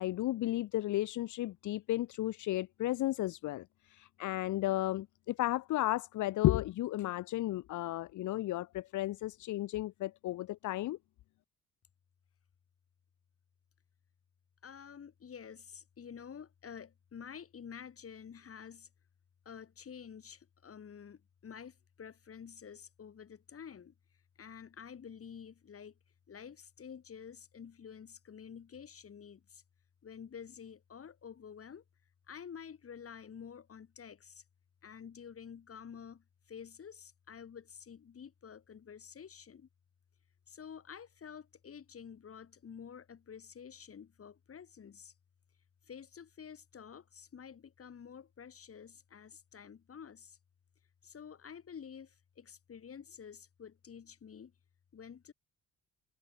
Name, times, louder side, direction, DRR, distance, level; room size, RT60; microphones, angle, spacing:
voice 1, 0.0-11.0, left 15 dB, 75° left, 0.9 m, -33 dB
voice 2, 14.6-18.9 19.5-23.9 24.4-26.0 26.3-29.6 30.0-31.8 32.3-34.4 34.8-39.7 40.5-45.1 45.8-50.4 51.0-54.5 54.9-55.3, left 7 dB, 50° left, 5.5 m, -50 dB
cardioid pair, 90°, 30 cm